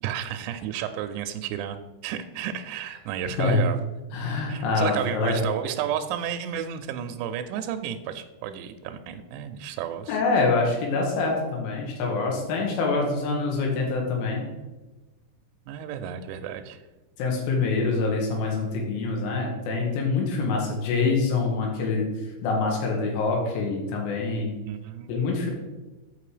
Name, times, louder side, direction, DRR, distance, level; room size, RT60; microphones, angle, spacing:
voice 1, 0.0-3.8 4.5-10.2 15.7-16.8 24.7-25.3, right 9 dB, 85° right, 7 dB, 2.5 m, -32 dB
voice 2, 4.1-5.5 10.1-14.5 17.2-22.1 22.4-24.6 25.1-25.5, left 3 dB, 90° left, -1 dB, 4.0 m, -25 dB
7.6 x 5.5 x 4.9 m, 1.1 s
omnidirectional pair, 5.4 m